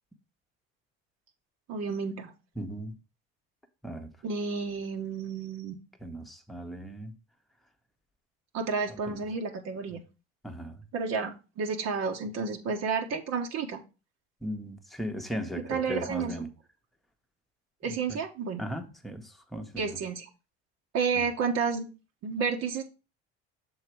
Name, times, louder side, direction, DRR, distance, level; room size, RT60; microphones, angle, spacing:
voice 1, 1.7-2.3 4.2-5.7 8.5-10.0 10.9-13.8 15.7-16.3 17.8-18.6 19.8-20.3 20.9-21.8 22.2-22.8, right 5 dB, 55° right, 1.3 m, -31 dB
voice 2, 2.6-2.9 3.8-4.1 6.0-7.2 9.1-9.2 10.4-10.8 14.4-16.5 17.9-18.2 18.6-19.8 21.2-21.3, equal, ahead, 1.1 m, -37 dB
6.5 x 4.1 x 4.6 m
supercardioid pair, 95°, 31 cm